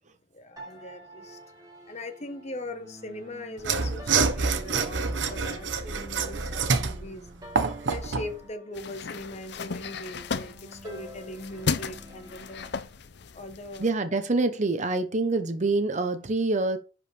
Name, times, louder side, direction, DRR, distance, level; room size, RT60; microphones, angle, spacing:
voice 1, 0.3-1.4 1.9-7.3 7.6-12.7 13.3-13.9, left 1 dB, 40° left, 1.2 m, -40 dB
sound 1, 0.6-12.8, equal, 20° right, 1.9 m, -49 dB
Mechanisms / Sawing, 3.6-8.3, right 4 dB, 90° right, 0.9 m, -27 dB
sound 2, 8.7-13.9, left 5 dB, 65° left, 0.6 m, -35 dB
voice 2, 13.8-16.8, right 3 dB, 40° right, 0.8 m, -26 dB
10.5 x 4.9 x 3.3 m
head